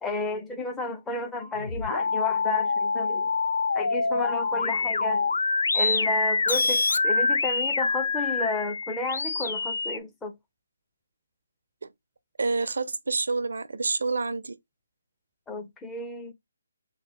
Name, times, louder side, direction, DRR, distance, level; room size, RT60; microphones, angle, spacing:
voice 1, 0.0-3.3 3.7-5.3 5.7-10.3 15.5-16.3, left 2 dB, 10° left, 0.5 m, -32 dB
sound 1, 1.6-10.0, left 4 dB, 70° left, 0.4 m, -26 dB
voice 2, 12.4-14.6, right 4 dB, 75° right, 0.5 m, -28 dB
3.9 x 2.1 x 3.6 m
hypercardioid pair, 155°, 0 cm